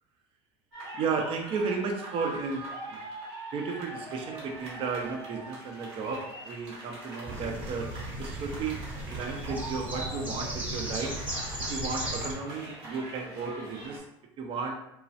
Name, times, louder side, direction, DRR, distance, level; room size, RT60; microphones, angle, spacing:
sound 1, 0.7-14.0, right 2 dB, 90° right, 1.0 m, -43 dB
voice 1, 0.9-3.0 3.5-7.9 8.2-8.8 9.1-11.1 11.7-14.0 14.4-14.8, right 4 dB, 45° right, 2 dB, 0.5 m, -34 dB
sound 2, 7.2-12.3, right 1 dB, 10° right, 0.9 m, -36 dB
3.1 x 2.3 x 2.6 m, 0.80 s
hypercardioid pair, 85°, 13 cm